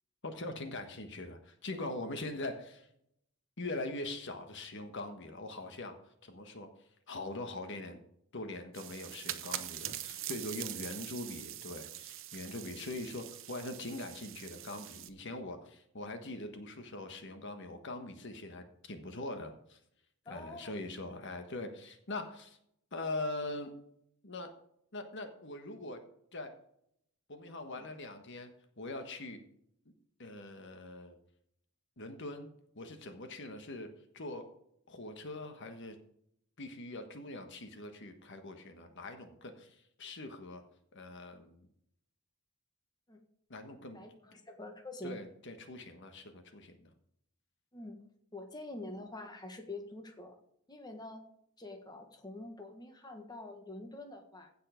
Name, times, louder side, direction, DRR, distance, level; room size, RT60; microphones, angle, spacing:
voice 1, 0.2-2.9 3.6-5.9 6.2-6.7 7.1-8.0 8.3-19.8 20.3-22.6 22.9-23.7 24.2-24.5 24.9-26.0 26.3-26.5 27.3-29.4 30.2-31.2 32.0-32.5 32.7-34.5 34.9-36.0 36.6-40.6 40.9-41.7 43.5-44.0 45.0-46.8, left 2 dB, 55° left, 6 dB, 1.4 m, -42 dB
sound 1, 8.7-15.1, right 12 dB, 65° right, 0.9 m, -43 dB
voice 2, 20.2-20.7 27.8-27.9 43.1-43.2 43.9-45.1 47.7-48.0 48.3-50.4 50.7-51.2 51.6-54.5, left 2 dB, 20° left, 4 dB, 1.5 m, -46 dB
16.0 x 5.7 x 5.1 m, 0.71 s
head